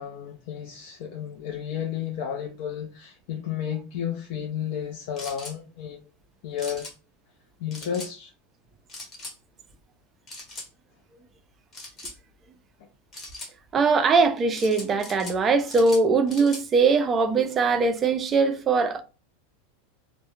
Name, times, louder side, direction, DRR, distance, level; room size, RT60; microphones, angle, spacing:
voice 1, 0.0-6.0 6.4-6.9 7.6-8.3, left 9 dB, 55° left, 0.4 m, -32 dB
sound 1, 5.2-5.6 6.6-6.9 7.7-8.1 8.9-9.4 10.3-10.7 11.7-12.2 13.1-13.5 14.5-15.4 15.7-16.6, left 2 dB, 20° left, 0.8 m, -40 dB
voice 2, 13.7-19.0, right 4 dB, 20° right, 0.3 m, -21 dB
2.2 x 2.1 x 3.0 m
supercardioid pair, 160°, 0 cm